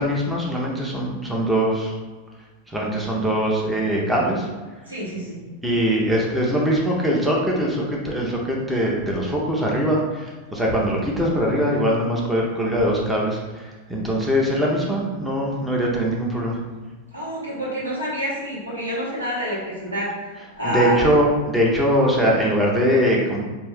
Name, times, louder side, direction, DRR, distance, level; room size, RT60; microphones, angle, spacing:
voice 1, 0.0-2.0 2.7-4.5 5.6-16.6 20.6-23.4, equal, 5° right, -3 dB, 0.7 m, -22 dB
voice 2, 4.9-5.4 17.1-20.1 20.6-21.0, equal, 80° right, -6 dB, 1.4 m, -27 dB
4.3 x 2.6 x 3.4 m, 1.3 s
figure-of-eight pair, 90°, 0 cm